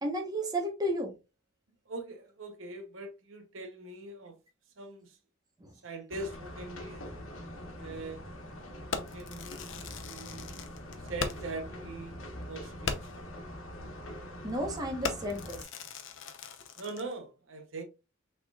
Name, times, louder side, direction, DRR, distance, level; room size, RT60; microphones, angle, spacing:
voice 1, 0.0-1.1 5.6-5.7 14.4-15.6, right 1 dB, 20° right, 1.0 m, -32 dB
voice 2, 1.9-4.4 4.8-5.1 5.8-7.0 7.8-8.2 8.8-10.5 11.1-12.2 12.5-13.2 16.8-17.8, right 2 dB, 70° right, 0.9 m, -42 dB
sound 1, 6.1-15.6, equal, 85° left, 1.2 m, -44 dB
Fireworks, 8.9-11.6 12.0-12.1 12.4-12.5 12.8-13.3 13.9-14.1 14.4-14.7 15.0-17.1, left 5 dB, 65° left, 0.7 m, -39 dB
5.9 x 3.6 x 2.3 m
head